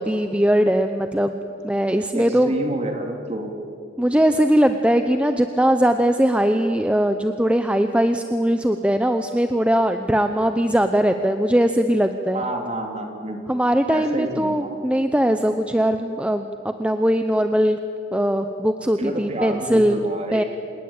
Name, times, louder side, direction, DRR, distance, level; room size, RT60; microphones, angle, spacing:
voice 1, 0.0-1.4 1.6-2.5 4.0-12.4 13.5-17.8 18.1-20.0 20.3-20.4, equal, 5° right, 7 dB, 0.7 m, -20 dB
voice 2, 2.1-3.5 12.3-13.4 13.9-14.8 19.0-20.4, right 1 dB, 35° right, 3 dB, 3.1 m, -29 dB
28.0 x 19.0 x 8.8 m, 2.7 s
head